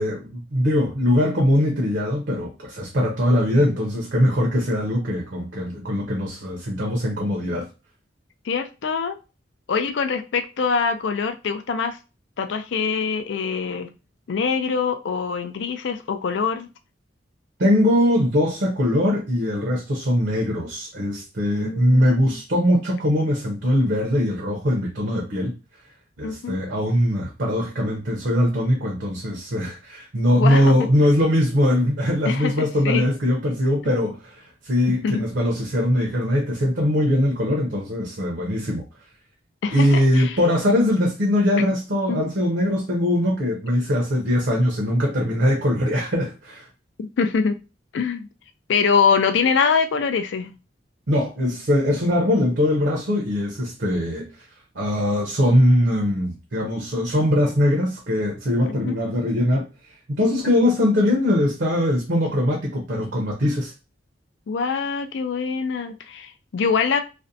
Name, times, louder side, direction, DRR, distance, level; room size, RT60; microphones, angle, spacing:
voice 1, 0.0-7.7 17.6-25.5 26.2-38.8 39.7-46.7 51.1-54.3 54.7-59.6 60.1-63.7, left 1 dB, 60° right, 0.6 m, -21 dB
voice 2, 8.5-9.2 9.7-12.0 12.4-13.9 14.3-16.7 21.5-22.4 26.2-26.7 30.4-30.9 32.2-33.0 33.8-33.9 34.9-35.3 39.6-40.4 41.6-41.7 42.1-42.3 47.0-47.6 47.9-48.3 48.7-50.5 58.7-59.0 64.5-67.0, left 5 dB, 70° left, 0.4 m, -24 dB
2.5 x 2.1 x 2.6 m
head